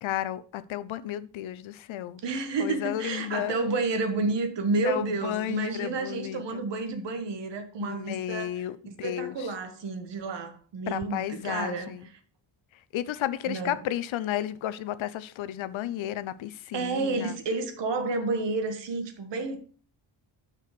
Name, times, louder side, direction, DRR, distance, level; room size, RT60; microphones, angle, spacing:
voice 1, 0.0-2.2 2.6-3.7 4.8-6.6 7.8-9.5 10.9-12.1 12.7-17.3, left 12 dB, 85° left, 0.7 m, -33 dB
voice 2, 2.2-8.5 8.8-11.9 13.5-13.8 16.7-19.6, right 3 dB, 65° right, 1.5 m, -30 dB
6.5 x 5.0 x 6.8 m
wide cardioid pair, 175°, 46 cm